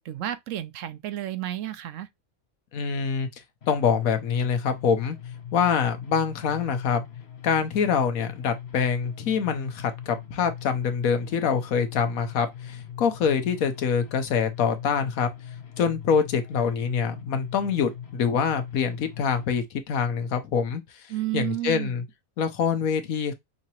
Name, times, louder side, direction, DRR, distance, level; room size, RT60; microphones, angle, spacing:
voice 1, 0.0-2.1 21.1-21.9, right 13 dB, 70° right, 0.9 m, -31 dB
voice 2, 2.7-3.3 3.7-5.2 5.5-7.0 7.4-15.3 15.8-21.1 21.3-22.0 22.4-23.3, left 6 dB, 85° left, 1.3 m, -25 dB
sound 1, 3.6-19.6, left 9 dB, 55° left, 1.1 m, -41 dB
5.7 x 2.8 x 2.9 m
omnidirectional pair, 1.4 m